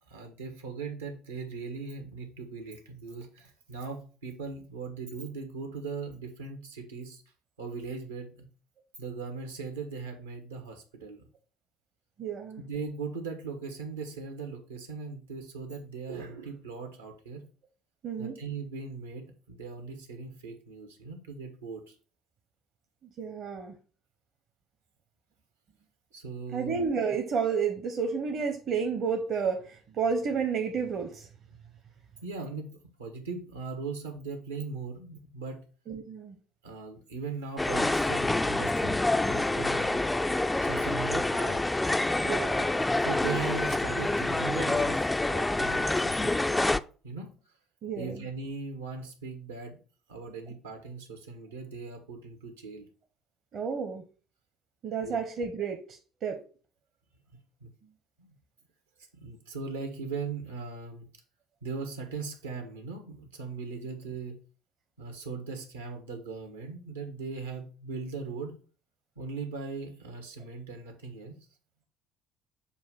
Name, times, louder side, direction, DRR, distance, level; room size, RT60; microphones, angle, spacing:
voice 1, 0.1-7.2 7.6-8.5 9.0-11.3 12.6-17.4 18.2-21.9 26.1-26.8 32.2-35.6 36.6-40.0 40.6-41.6 43.0-46.6 47.0-47.3 47.9-49.8 50.1-52.8 55.0-55.2 57.6-57.7 58.2-58.3 59.1-61.1 61.6-64.4 65.0-68.6 69.2-71.4, right 4 dB, 85° right, 1.3 m, -39 dB
voice 2, 12.2-12.6 18.0-18.4 23.2-23.7 26.5-31.3 35.9-36.4 42.1-42.7 47.8-48.2 53.5-54.0 54.8-56.4, right 6 dB, 50° right, 0.9 m, -31 dB
sound 1, 37.6-46.8, left 2 dB, 15° left, 0.4 m, -27 dB
7.1 x 2.5 x 5.5 m
hypercardioid pair, 60°, 0 cm